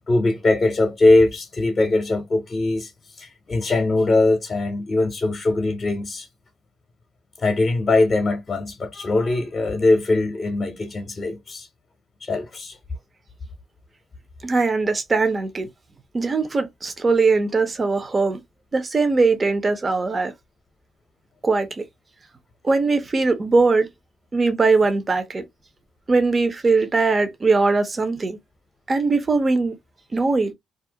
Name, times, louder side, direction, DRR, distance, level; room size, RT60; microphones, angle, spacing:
voice 1, 0.1-2.9 3.2-6.3 7.4-11.7 12.2-12.8, left 2 dB, 40° left, 0.7 m, -21 dB
voice 2, 14.4-15.7 16.1-18.4 18.7-20.3 21.4-21.8 22.6-23.9 24.3-25.4 26.1-28.4 28.9-29.8 30.1-30.5, right 3 dB, 35° right, 0.6 m, -20 dB
2.4 x 2.0 x 2.6 m
supercardioid pair, 60°, 0 cm